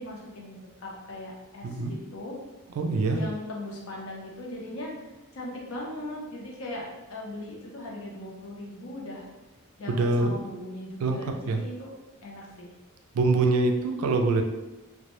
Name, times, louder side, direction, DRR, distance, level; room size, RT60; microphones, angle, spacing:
voice 1, 0.0-2.4 3.1-9.3 9.8-11.9 12.2-12.7, left 1 dB, 70° left, -2 dB, 0.6 m, -39 dB
voice 2, 2.8-3.2 9.9-10.4 11.0-11.2 11.5-11.6 13.1-14.4, right 3 dB, 80° right, 4 dB, 0.3 m, -24 dB
2.1 x 2.0 x 2.9 m, 1.0 s
head